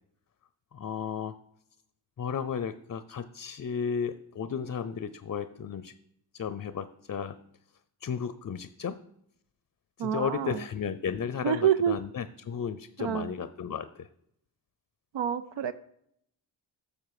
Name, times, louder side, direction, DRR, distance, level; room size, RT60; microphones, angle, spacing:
voice 1, 0.7-1.3 2.2-5.9 6.3-7.4 8.0-9.0 10.0-14.1, left 7 dB, 40° left, 14 dB, 0.5 m, -34 dB
voice 2, 10.0-10.6 11.4-12.0 13.0-13.3 15.1-15.7, right 9 dB, 70° right, 12 dB, 0.6 m, -27 dB
10.5 x 6.7 x 4.8 m, 0.72 s
cardioid pair, 60°, 46 cm